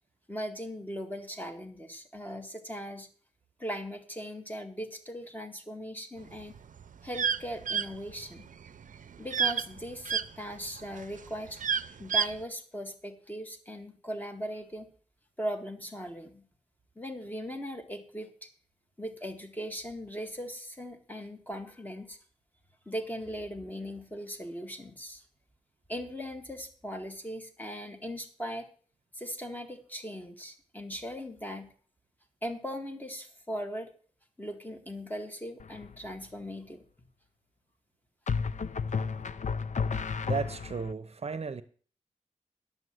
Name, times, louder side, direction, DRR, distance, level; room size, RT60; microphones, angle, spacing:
voice 1, 0.3-3.1 3.6-6.6 7.0-8.5 9.2-11.6 12.0-14.9 15.4-16.5 17.0-18.5 19.0-22.2 22.9-25.2 25.9-28.7 29.1-31.7 32.4-33.9 34.4-36.8, equal, 15° left, 2.0 m, -39 dB
sound 1, 6.4-10.3 10.8-12.4, right 7 dB, 90° right, 0.6 m, -29 dB
sound 2, 35.6-36.1 38.3-40.9, left 5 dB, 70° left, 0.5 m, -32 dB
voice 2, 40.2-41.6, right 5 dB, 55° right, 0.7 m, -34 dB
11.0 x 7.1 x 7.8 m
wide cardioid pair, 100°, 13 cm